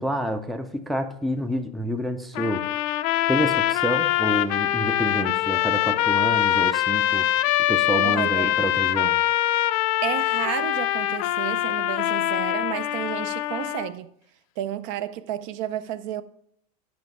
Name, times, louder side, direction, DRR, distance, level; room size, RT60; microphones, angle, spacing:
voice 1, 0.0-2.6 3.3-7.3 7.7-9.1, equal, ahead, 0.4 m, -28 dB
sound 1, 2.3-13.9, left 13 dB, 60° left, 0.5 m, -23 dB
voice 2, 8.0-8.5 10.0-14.1 14.6-16.2, right 11 dB, 50° right, 0.5 m, -31 dB
9.6 x 5.0 x 4.8 m
supercardioid pair, 150°, 20 cm